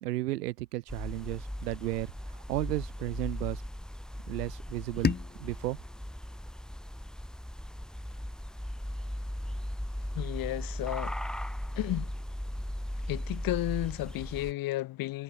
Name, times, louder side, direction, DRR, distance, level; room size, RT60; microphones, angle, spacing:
voice 1, 0.0-3.6 4.3-5.8, right 17 dB, 75° right, 2.7 m, -34 dB
sound 1, 0.9-14.5, equal, ahead, 1.8 m, -38 dB
sound 2, 5.0-7.9, left 6 dB, 20° left, 1.7 m, -36 dB
voice 2, 10.1-11.2 11.7-12.1 13.1-15.2, left 17 dB, 45° left, 1.4 m, -33 dB
hypercardioid pair, 85°, 48 cm